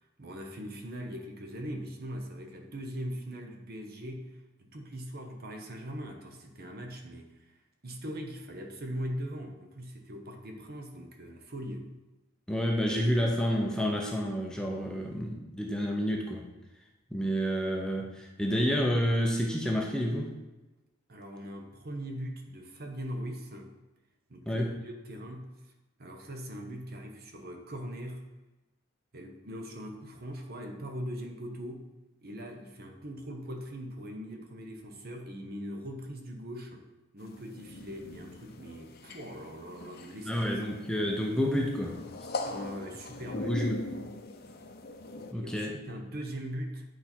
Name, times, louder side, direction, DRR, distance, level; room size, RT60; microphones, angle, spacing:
voice 1, 0.2-4.3 4.6-7.5 7.8-11.9 21.1-23.7 24.3-25.5 26.0-28.2 29.1-31.9 32.2-36.9 37.1-40.5 42.4-43.6 45.3-46.8, equal, 45° right, 3 dB, 1.0 m, -40 dB
voice 2, 12.5-16.5 17.1-20.4 24.5-24.7 40.3-42.0 43.3-43.8 45.3-45.8, equal, 5° left, 0 dB, 0.6 m, -29 dB
sound 1, 37.2-45.3, left 2 dB, 45° left, 0.7 m, -41 dB
9.5 x 4.2 x 4.4 m, 1.1 s
head